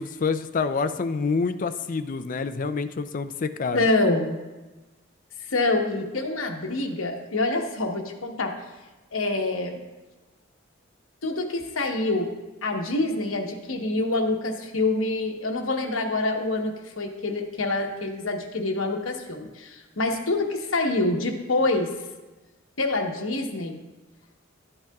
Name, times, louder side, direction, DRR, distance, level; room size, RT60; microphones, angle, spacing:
voice 1, 0.0-3.8, left 4 dB, 40° left, 10 dB, 0.4 m, -27 dB
voice 2, 3.7-4.4 5.4-8.5 9.1-9.8 11.2-12.3 12.6-21.9 22.8-23.8, left 2 dB, 80° left, 2 dB, 1.1 m, -26 dB
12.0 x 8.7 x 2.3 m, 1.1 s
head